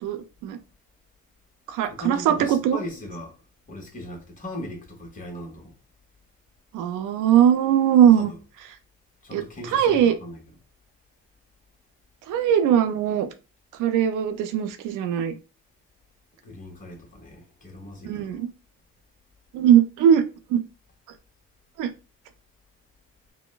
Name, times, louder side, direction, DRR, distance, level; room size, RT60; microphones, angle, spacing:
voice 1, 0.0-0.6 1.7-2.8 6.7-8.3 9.3-9.4 9.7-10.1 12.3-13.3 13.8-15.3 18.0-18.5 19.5-20.2 20.5-20.6 21.8-21.9, right 9 dB, 90° right, 0.5 m, -20 dB
voice 2, 1.9-3.3 3.7-5.7 8.2-8.4 9.2-10.4 16.4-18.4, left 1 dB, 25° left, 1.2 m, -38 dB
4.0 x 2.1 x 2.3 m
cardioid pair, 90°, 30 cm